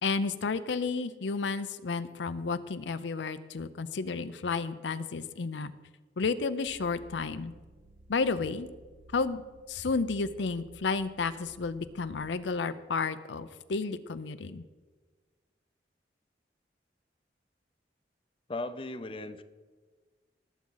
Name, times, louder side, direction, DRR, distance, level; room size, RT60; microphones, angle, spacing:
voice 1, 0.0-5.7 6.2-7.5 8.1-8.7 9.1-9.4 9.7-14.6, left 4 dB, 85° left, 12 dB, 0.5 m, -32 dB
sound 1, 6.6-12.3, right 2 dB, 85° right, 0.8 m, -55 dB
voice 2, 18.5-19.4, left 2 dB, 30° left, 10 dB, 0.5 m, -37 dB
19.0 x 7.4 x 3.9 m, 1.4 s
head